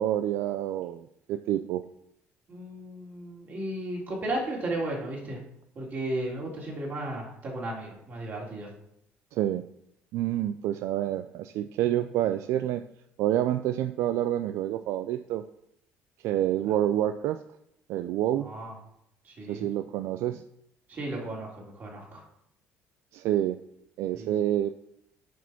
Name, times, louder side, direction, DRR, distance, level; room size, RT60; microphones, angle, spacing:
voice 1, 0.0-1.8 9.3-9.6 10.1-12.8 13.2-15.4 16.2-17.4 17.9-18.5 19.5-20.4 23.1-23.6 24.0-24.7, right 12 dB, 75° right, 9 dB, 0.4 m, -28 dB
voice 2, 2.5-5.4 5.7-8.7 18.4-18.7 19.2-19.7 20.9-22.2 24.1-24.3, right 1 dB, 40° right, -2 dB, 3.3 m, -34 dB
7.9 x 5.1 x 5.8 m, 0.75 s
cardioid pair, 115°, 5 cm